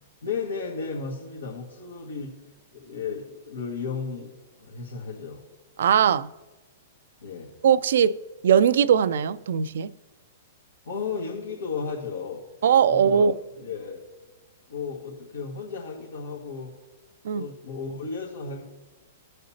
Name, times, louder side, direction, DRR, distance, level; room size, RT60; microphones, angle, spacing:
voice 1, 0.2-2.3 2.7-5.4 7.2-7.5 10.9-12.4 12.9-13.3 13.6-14.0 14.7-16.7 17.3-18.6, left 5 dB, 90° left, 1.8 m, -34 dB
voice 2, 5.8-6.3 7.6-8.2 8.4-9.9 12.6-13.3 17.2-17.4, right 8 dB, 70° right, 0.4 m, -20 dB
18.5 x 6.5 x 2.8 m
hypercardioid pair, 120°, 0 cm